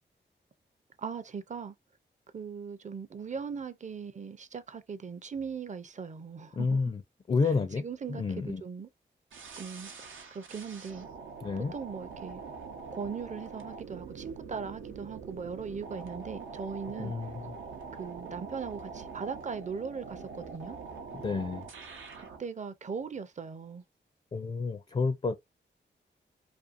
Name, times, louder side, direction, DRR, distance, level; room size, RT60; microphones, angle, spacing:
voice 1, 1.0-1.7 2.3-6.8 7.8-8.9 9.6-9.9 10.3-11.1 11.7-12.4 12.9-17.1 18.0-20.8 22.2-23.8, right 6 dB, 40° right, 0.5 m, -39 dB
voice 2, 6.5-7.0 7.3-8.6 11.4-11.7 17.0-17.6 21.2-21.7 24.3-25.4, left 4 dB, 30° left, 0.4 m, -30 dB
sound 1, 9.3-22.4, right 5 dB, 85° right, 0.6 m, -44 dB
2.6 x 2.4 x 2.5 m
cardioid pair, 50°, 20 cm